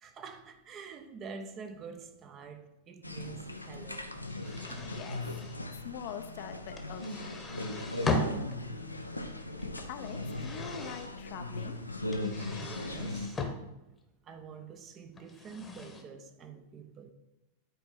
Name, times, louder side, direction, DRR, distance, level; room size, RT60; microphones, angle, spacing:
voice 1, 0.0-4.1 4.4-5.0 12.5-13.4 14.2-17.1, right 5 dB, 30° right, 0.9 m, -47 dB
sound 1, 3.0-13.3, left 2 dB, 85° left, 0.6 m, -38 dB
sound 2, 4.3-5.6 6.8-8.6 9.6-11.1 12.1-13.5 15.2-16.0, left 2 dB, 15° left, 1.1 m, -37 dB
voice 2, 4.8-5.4 5.7-7.4 9.9-11.8, left 8 dB, 45° left, 0.6 m, -44 dB
10.5 x 4.6 x 4.5 m
figure-of-eight pair, 90°, 0 cm